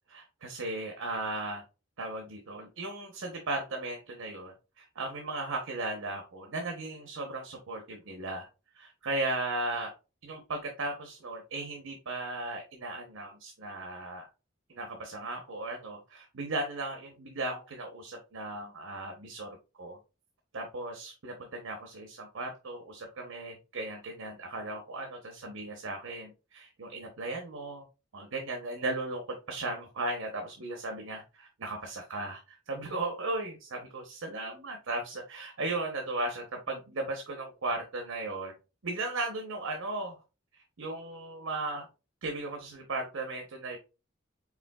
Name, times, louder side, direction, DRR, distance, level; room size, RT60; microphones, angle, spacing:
voice 1, 0.1-1.6 2.0-8.5 8.7-9.9 10.2-14.3 14.7-20.0 20.5-27.8 28.1-38.6 38.8-40.2 40.8-41.9 42.2-43.8, right 2 dB, 80° right, 3 dB, 0.8 m, -36 dB
4.9 x 3.4 x 2.3 m, 0.30 s
head